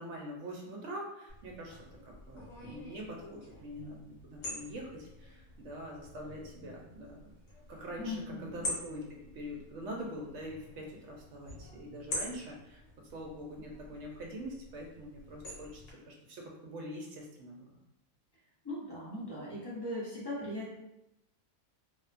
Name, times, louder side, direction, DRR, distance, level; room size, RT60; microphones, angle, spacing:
voice 1, 0.0-7.4 7.7-12.8 13.1-17.8, equal, 65° right, -1 dB, 0.8 m, -44 dB
sound 1, 1.3-15.9, left 1 dB, 75° left, 1.3 m, -46 dB
voice 2, 8.0-8.7 18.6-20.7, left 1 dB, 40° left, -8 dB, 0.3 m, -39 dB
2.7 x 2.1 x 2.4 m, 0.89 s
omnidirectional pair, 1.5 m